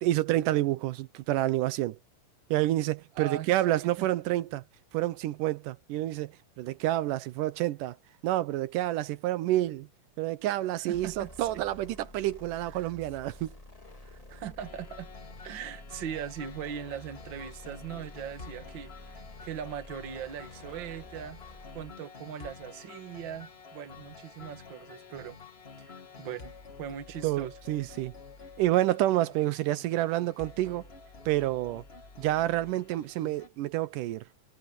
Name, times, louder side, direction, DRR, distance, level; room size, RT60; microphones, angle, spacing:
voice 1, 0.0-2.0 2.5-4.6 4.9-6.3 6.6-8.0 8.2-9.9 10.2-13.5 27.2-28.1 28.6-30.8 31.3-31.8 32.2-34.2, right 15 dB, 85° right, 2.3 m, -28 dB
voice 2, 3.2-4.1 10.9-11.3 11.5-11.6 12.7-12.9 14.0-15.1 15.4-18.9 19.4-21.4 21.7-25.4 25.8-27.5, right 9 dB, 50° right, 1.6 m, -40 dB
sound 1, 10.9-22.0, left 2 dB, 15° left, 1.4 m, -50 dB
sound 2, 14.6-33.5, left 5 dB, 55° left, 0.6 m, -49 dB
omnidirectional pair, 3.8 m